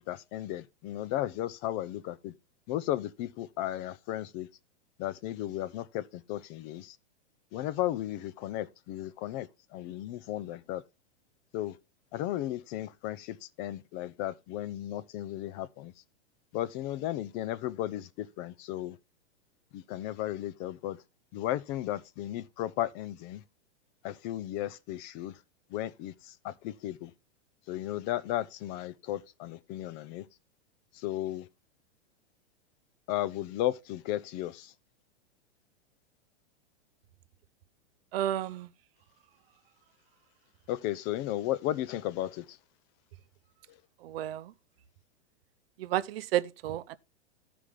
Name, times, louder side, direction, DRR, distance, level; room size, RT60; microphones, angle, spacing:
voice 1, 0.0-2.3 2.7-4.5 5.0-7.0 7.5-10.8 11.5-11.8 12.1-15.9 16.5-19.0 19.7-21.0 21.3-23.4 24.0-25.4 25.7-27.1 27.7-30.3 30.9-31.5 33.1-34.7 40.7-42.6 43.7-43.8, left 13 dB, 30° left, 0.4 m, -35 dB
voice 2, 38.1-38.7 44.0-44.5 45.8-47.0, right 12 dB, 60° right, 0.7 m, -31 dB
14.0 x 5.0 x 3.6 m
hypercardioid pair, 115°, 34 cm